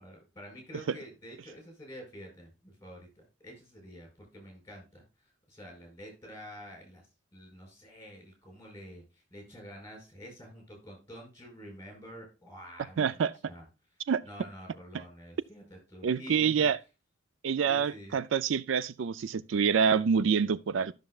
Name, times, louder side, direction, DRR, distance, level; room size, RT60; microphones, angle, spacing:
voice 1, 0.0-13.6 14.2-16.7 17.7-18.2, equal, 15° left, 5.1 m, -48 dB
voice 2, 13.0-13.3 14.1-14.2 16.0-16.8 17.4-20.9, right 6 dB, 80° right, 0.4 m, -26 dB
12.5 x 6.5 x 2.3 m
head